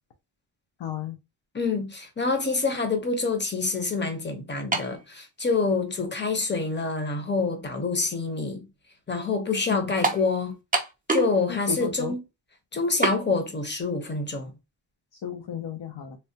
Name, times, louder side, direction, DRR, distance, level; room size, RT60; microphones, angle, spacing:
voice 1, 0.8-1.2 9.7-9.9 11.5-12.1 15.1-16.2, left 8 dB, 70° left, 0.6 m, -33 dB
voice 2, 1.5-8.6 9.1-10.6 11.1-12.2 12.7-14.5, left 4 dB, 25° left, 0.8 m, -27 dB
sound 1, 4.7-5.0 5.9-6.0 10.0-10.3 10.7-11.4 11.7-11.8 13.0-13.2, right 3 dB, 20° right, 0.4 m, -25 dB
3.3 x 2.2 x 2.7 m
wide cardioid pair, 115°, 45 cm